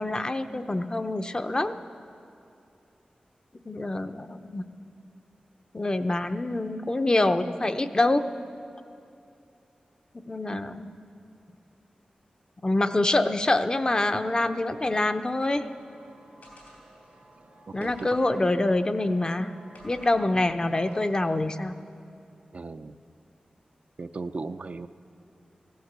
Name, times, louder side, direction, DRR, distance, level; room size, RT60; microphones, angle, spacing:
voice 1, 0.0-1.8 3.7-4.7 5.7-8.3 10.2-10.9 12.6-15.6 17.7-19.5 19.8-21.8, left 2 dB, 30° left, 9 dB, 0.6 m, -25 dB
sound 1, 13.9-21.3, right 2 dB, 80° right, 1.4 m, -54 dB
sound 2, 16.4-17.2 17.8-19.3 19.7-20.3 20.8-21.2, left 1 dB, 80° left, 4.7 m, -53 dB
voice 2, 17.7-18.1 22.5-23.0 24.0-24.9, right 3 dB, 55° right, 10 dB, 0.5 m, -36 dB
16.0 x 12.5 x 6.7 m, 2.6 s
wide cardioid pair, 70°, 3 cm